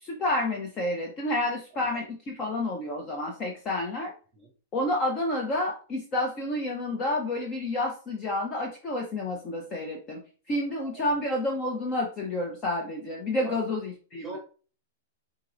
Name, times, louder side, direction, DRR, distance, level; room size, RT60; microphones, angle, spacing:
voice 1, 0.0-4.1 4.7-10.2 10.5-14.4, left 1 dB, 25° left, 0 dB, 0.8 m, -29 dB
voice 2, 10.7-11.2 13.4-13.6 14.2-14.4, right 2 dB, ahead, -1 dB, 1.9 m, -42 dB
4.5 x 4.0 x 2.6 m, 0.38 s
supercardioid pair, 155°, 0 cm